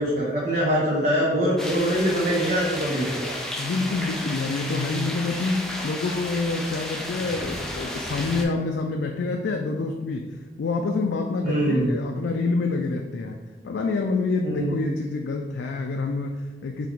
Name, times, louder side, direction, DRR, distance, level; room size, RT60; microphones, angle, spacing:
voice 1, 0.0-3.4 11.4-11.9 14.4-14.7, equal, 45° right, -7 dB, 0.9 m, -23 dB
sound 1, 1.6-8.5, left 1 dB, 5° left, 0.4 m, -33 dB
voice 2, 3.6-13.4 13.6-16.9, left 3 dB, 85° left, 2 dB, 0.3 m, -27 dB
4.0 x 2.9 x 4.4 m, 1.3 s
head